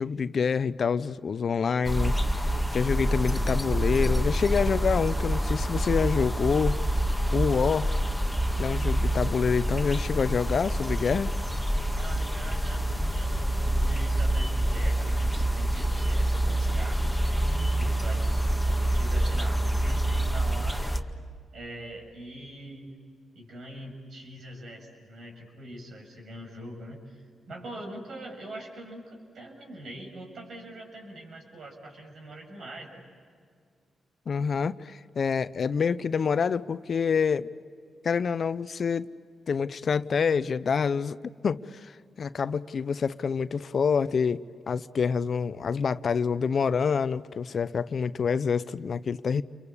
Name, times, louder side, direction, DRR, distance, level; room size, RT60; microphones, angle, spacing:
voice 1, 0.0-2.1 2.7-6.8 7.3-7.9 8.6-11.3 34.3-37.5 38.0-39.1 39.5-41.2 41.4-41.9 42.2-44.4 44.7-49.4, left 6 dB, 60° left, 0.8 m, -27 dB
sound 1, 1.8-21.0, right 1 dB, ahead, 1.9 m, -26 dB
voice 2, 11.9-21.0 21.5-22.9 23.3-33.1, right 1 dB, 65° right, 7.2 m, -43 dB
30.0 x 23.5 x 8.5 m
supercardioid pair, 50°, 0 cm